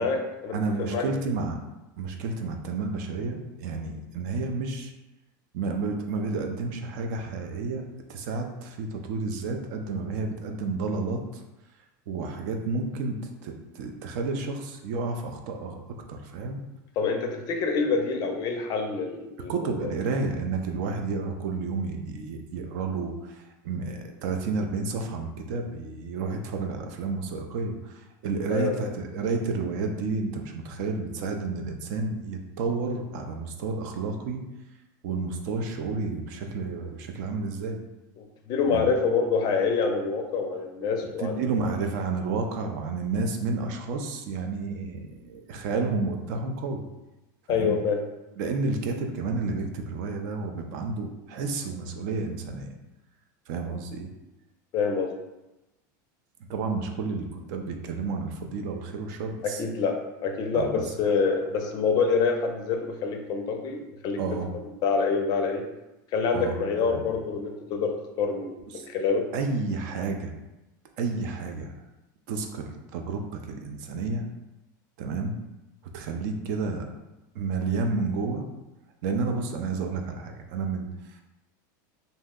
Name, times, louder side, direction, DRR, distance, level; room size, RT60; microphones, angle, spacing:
voice 1, 0.0-1.1 17.0-19.9 28.5-28.9 38.2-41.7 47.5-48.0 54.7-55.1 59.4-65.6 66.1-69.3, left 5 dB, 40° left, 4 dB, 0.4 m, -27 dB
voice 2, 0.5-1.6 2.0-4.9 5.5-7.8 8.1-11.4 12.1-15.8 16.1-16.6 19.5-34.4 35.0-37.8 38.7-38.9 41.0-46.8 47.5-47.8 48.4-52.7 53.5-54.1 56.5-59.6 60.5-60.7 61.1-61.2 64.2-64.5 66.3-66.6 66.9-67.1 68.7-68.9 69.3-70.3 71.0-71.7 72.3-74.2 75.0-75.4 75.9-76.9 77.3-78.4 79.0-81.2, right 4 dB, 60° right, 4 dB, 0.4 m, -31 dB
2.6 x 2.0 x 3.6 m, 1.0 s
supercardioid pair, 135°, 11 cm